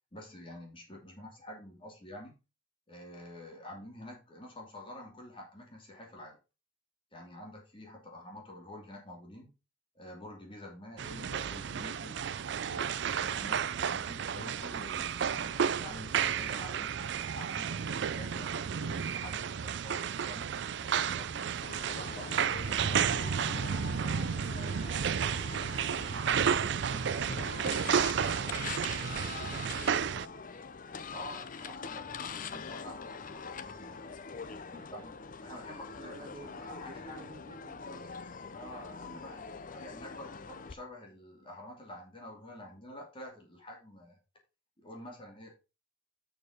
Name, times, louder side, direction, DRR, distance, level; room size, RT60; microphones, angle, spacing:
voice 1, 0.1-2.3 2.9-6.4 7.1-9.5 9.9-12.2 12.6-21.5 21.9-23.6 31.1-34.0 34.9-35.2 35.4-37.2 38.5-44.2 44.8-45.5, left 1 dB, 25° left, 2.7 m, -48 dB
sound 1, 11.0-30.3, right 7 dB, 65° right, 0.4 m, -32 dB
sound 2, 21.6-40.7, left 5 dB, 45° left, 0.6 m, -43 dB
voice 2, 25.5-30.2 34.4-34.9 35.9-38.2 39.0-39.3, right 2 dB, 30° right, 1.5 m, -53 dB
6.9 x 6.6 x 4.9 m
head